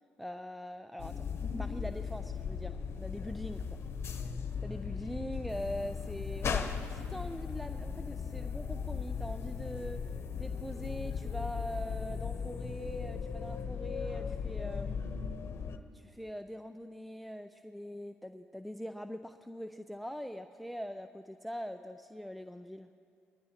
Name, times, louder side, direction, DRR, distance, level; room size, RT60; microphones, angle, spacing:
voice 1, 0.2-1.3 1.6-3.8 4.6-10.0 10.4-15.0 15.9-22.9, equal, ahead, 8 dB, 0.5 m, -42 dB
sound 1, 1.0-15.8, left 6 dB, 55° left, 1.0 m, -37 dB
21.5 x 15.0 x 2.9 m, 2.4 s
supercardioid pair, 60°, 5 cm